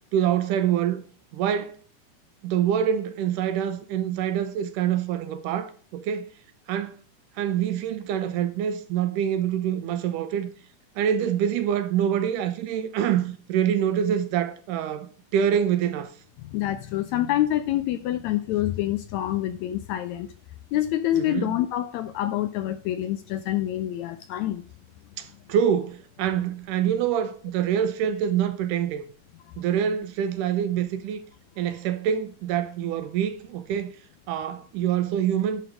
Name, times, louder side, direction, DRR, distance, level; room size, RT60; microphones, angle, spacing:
voice 1, 0.1-1.0 1.3-1.8 2.4-6.3 6.7-7.0 7.4-10.5 11.0-16.1 21.1-21.6 25.2-29.0 29.6-31.2 31.6-33.9 34.3-35.6, right 9 dB, 85° right, 2.4 m, -25 dB
voice 2, 16.5-20.3 20.7-24.6, left 13 dB, 80° left, 1.7 m, -26 dB
11.0 x 3.9 x 4.9 m
omnidirectional pair, 3.7 m